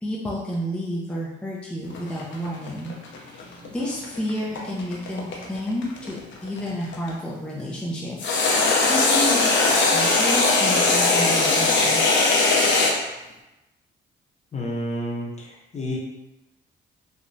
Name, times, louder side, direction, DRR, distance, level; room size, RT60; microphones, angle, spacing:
voice 1, 0.0-2.9 3.2-6.2 6.4-8.2 8.6-12.0, equal, 5° left, -5 dB, 0.5 m, -30 dB
sound 1, 1.9-7.1 8.2-12.9, left 3 dB, 70° left, 0.6 m, -20 dB
voice 2, 14.5-16.0, left 1 dB, 35° left, -3 dB, 0.7 m, -30 dB
3.0 x 2.2 x 2.6 m, 0.98 s
cardioid pair, 90°, 20 cm